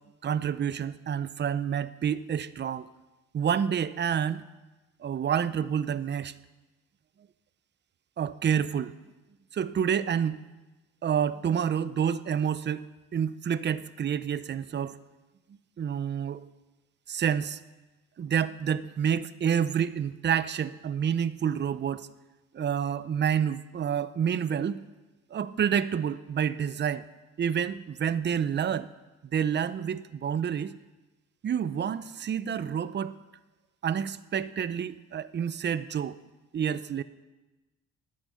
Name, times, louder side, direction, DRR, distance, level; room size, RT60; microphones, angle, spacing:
voice 1, 0.2-2.9 3.3-4.4 5.0-6.3 8.2-8.9 9.5-10.4 11.0-15.0 15.8-16.4 17.1-17.6 18.2-22.1 22.5-24.9 25.3-27.1 27.4-28.9 29.3-30.7 31.4-33.2 33.8-36.2 36.5-37.0, right 8 dB, 35° right, 16 dB, 0.6 m, -28 dB
13.0 x 9.3 x 6.8 m, 1.1 s
cardioid pair, 90°, 30 cm